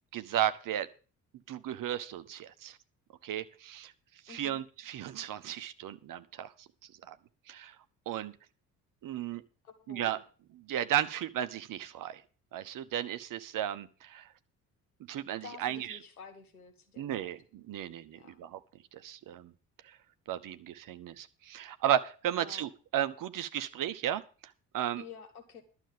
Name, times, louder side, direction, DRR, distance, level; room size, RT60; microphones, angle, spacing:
voice 1, 0.1-0.9 1.5-2.8 3.2-3.9 4.3-6.7 7.1-7.2 7.5-7.8 8.1-8.3 9.0-9.4 9.9-10.2 10.5-12.2 12.5-14.3 15.1-16.0 17.0-18.6 18.9-19.5 19.8-20.0 20.3-24.2 24.7-25.0, right 11 dB, 50° right, 12 dB, 1.0 m, -34 dB
voice 2, 4.3-4.6 9.6-10.2 15.4-17.3 18.1-18.4 22.4-22.7 25.0-25.6, left 6 dB, 85° left, 6 dB, 1.4 m, -50 dB
11.5 x 7.1 x 6.7 m, 0.36 s
figure-of-eight pair, 45°, 43 cm